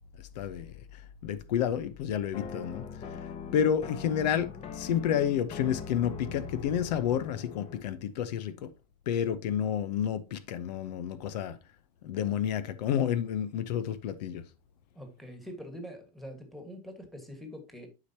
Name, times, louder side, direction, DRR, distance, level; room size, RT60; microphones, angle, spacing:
voice 1, 0.4-2.8 3.2-8.7 9.1-11.6 12.0-14.4, left 9 dB, 90° left, 0.9 m, -30 dB
sound 1, 2.3-7.9, left 6 dB, 30° left, 1.0 m, -41 dB
voice 2, 14.9-17.9, equal, ahead, 1.6 m, -44 dB
11.5 x 5.0 x 2.9 m
supercardioid pair, 150°, 21 cm